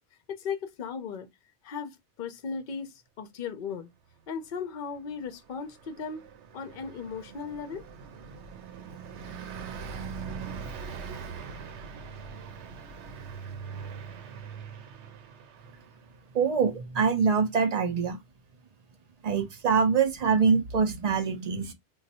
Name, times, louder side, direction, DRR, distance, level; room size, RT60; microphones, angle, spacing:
voice 1, 0.3-1.3 1.6-3.9 4.3-6.3 6.5-7.9, left 6 dB, 55° left, 0.7 m, -37 dB
Car passing by, 5.1-16.1, right 6 dB, 85° right, 0.9 m, -41 dB
voice 2, 16.3-18.2 19.2-21.7, right 5 dB, 45° right, 0.6 m, -24 dB
2.5 x 2.3 x 4.1 m
omnidirectional pair, 1.1 m